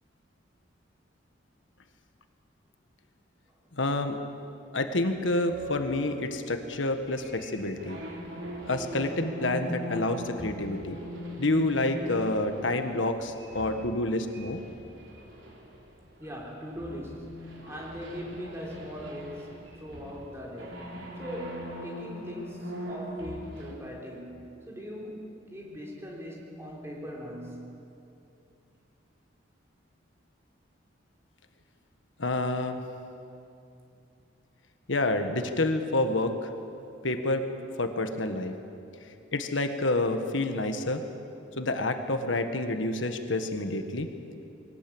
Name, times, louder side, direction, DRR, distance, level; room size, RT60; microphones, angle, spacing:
voice 1, 3.8-4.2 4.7-8.0 8.7-11.0 11.4-14.6 32.2-32.8 34.9-36.5 37.0-37.5 37.8-38.5 39.3-41.0 41.6-44.1, left 2 dB, 80° left, 7 dB, 1.5 m, -28 dB
sound 1, 5.4-16.4 16.7-23.7, equal, 70° right, 3.5 m, -41 dB
voice 2, 16.2-27.7, equal, 15° right, -2 dB, 3.7 m, -40 dB
21.5 x 18.5 x 8.7 m, 2.6 s
head